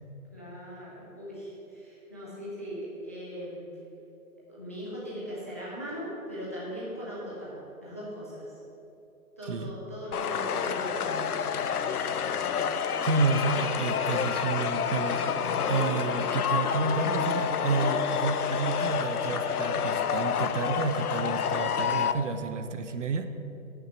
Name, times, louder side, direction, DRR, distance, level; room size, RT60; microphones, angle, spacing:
voice 1, 0.3-3.6 4.5-8.5 9.4-11.4, equal, 10° left, -8 dB, 0.6 m, -39 dB
sound 1, 10.1-22.1, left 7 dB, 90° left, 0.7 m, -28 dB
voice 2, 13.0-15.2 15.7-23.3, right 4 dB, 55° right, 8 dB, 0.8 m, -30 dB
8.6 x 6.1 x 7.9 m, 2.9 s
hypercardioid pair, 170°, 44 cm